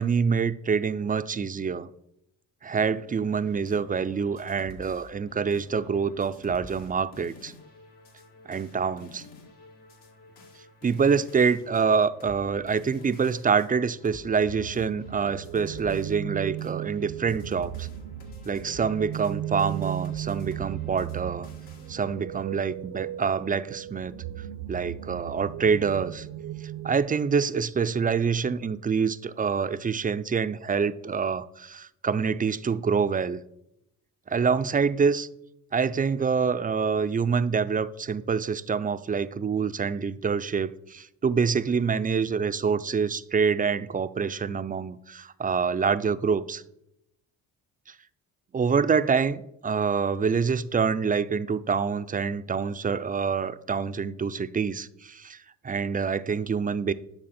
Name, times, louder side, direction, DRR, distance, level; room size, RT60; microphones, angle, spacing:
voice 1, 0.0-1.9 2.6-7.5 8.5-9.3 10.8-17.9 18.5-21.5 21.9-24.1 24.7-26.3 26.8-33.4 34.3-35.3 35.7-46.6 48.5-55.4 55.6-56.9, right 6 dB, 20° right, 0.4 m, -26 dB
sound 1, 3.4-21.9, left 2 dB, 80° left, 2.1 m, -50 dB
sound 2, 14.3-27.0, right 12 dB, 75° right, 0.8 m, -36 dB
10.5 x 6.4 x 4.2 m
cardioid pair, 80°, 39 cm